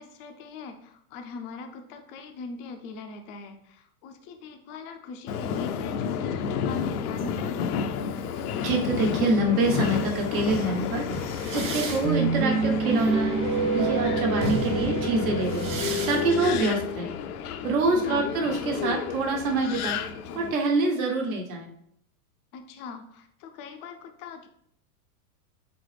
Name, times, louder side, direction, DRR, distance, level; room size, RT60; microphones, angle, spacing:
voice 1, 0.0-7.8 17.9-18.3 22.5-24.5, left 4 dB, 25° left, 6 dB, 0.4 m, -41 dB
Subway metro underground, 5.3-20.5, left 7 dB, 80° left, 0.5 m, -31 dB
voice 2, 8.6-11.1 11.5-13.4 13.7-15.6 16.1-17.1 17.6-20.0 20.3-21.7, right 2 dB, 65° right, 1 dB, 1.2 m, -25 dB
sound 1, 10.2-16.6, right 3 dB, 35° right, 1.4 m, -28 dB
4.0 x 4.0 x 3.3 m, 0.71 s
hypercardioid pair, 130°, 45 cm